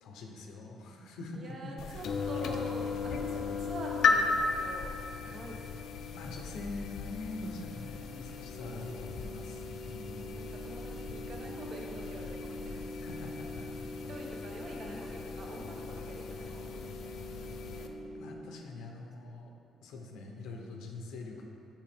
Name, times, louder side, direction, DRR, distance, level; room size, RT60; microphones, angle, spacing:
voice 1, 0.0-2.1 2.3-2.4 2.8-3.2 5.2-5.4 6.1-10.2 13.0-13.7 17.4-17.5 18.1-19.5 19.8-21.4, left 3 dB, 90° left, 2 dB, 0.7 m, -44 dB
voice 2, 1.3-5.0 5.2-6.1 8.6-9.6 10.0-12.8 14.1-17.9 19.2-19.3, right 1 dB, 45° right, -1 dB, 1.0 m, -46 dB
sound 1, 1.8-17.9, left 5 dB, 65° left, 0.4 m, -36 dB
sound 2, 8.4-18.4, equal, 20° left, 0.9 m, -45 dB
7.4 x 4.9 x 3.5 m, 2.6 s
cardioid pair, 135°, 0 cm